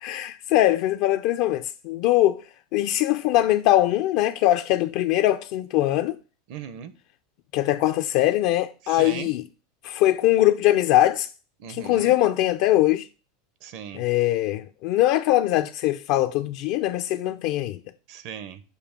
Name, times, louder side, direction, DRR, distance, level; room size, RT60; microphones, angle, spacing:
voice 1, 0.0-2.4 2.7-6.2 7.5-9.5 9.8-11.3 11.7-13.1 13.9-17.8, left 14 dB, 60° left, 0.4 m, -22 dB
voice 2, 6.5-6.9 8.9-9.3 11.6-12.2 13.6-14.0 18.1-18.6, right 8 dB, 60° right, 0.8 m, -37 dB
6.8 x 2.7 x 5.0 m
supercardioid pair, 125°, 0 cm